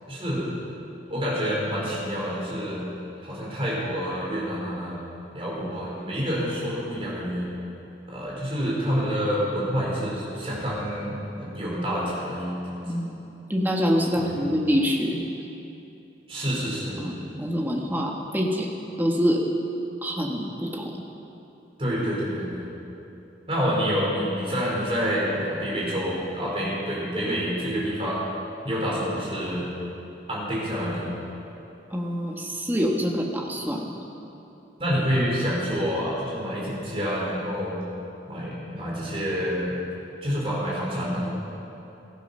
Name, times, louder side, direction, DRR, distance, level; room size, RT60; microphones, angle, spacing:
voice 1, 0.1-0.5 1.1-2.8 3.2-5.0 5.3-7.5 8.1-12.6 14.1-14.4 16.3-17.0 21.8-22.7 23.5-28.2 28.6-29.6 30.3-31.1 34.8-37.8 38.3-39.8 40.2-41.3, equal, 30° right, -5 dB, 4.5 m, -28 dB
voice 2, 12.9-13.2 13.5-15.2 17.0-18.7 19.0-19.4 20.0-21.0 31.9-33.9, equal, 10° right, -1 dB, 1.5 m, -25 dB
17.5 x 13.0 x 5.6 m, 2.9 s
head